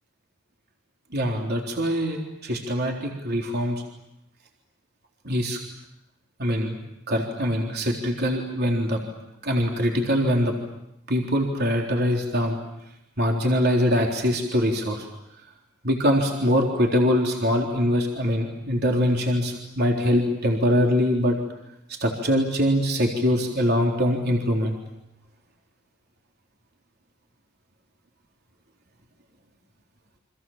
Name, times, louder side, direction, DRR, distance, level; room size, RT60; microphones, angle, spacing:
voice 1, 1.1-3.8 5.2-5.6 6.4-6.8 7.1-9.0 9.4-10.5 11.1-12.6 13.2-15.1 15.8-21.4 22.0-24.8, equal, 55° right, 1 dB, 3.8 m, -23 dB
30.0 x 26.0 x 7.4 m, 0.83 s
head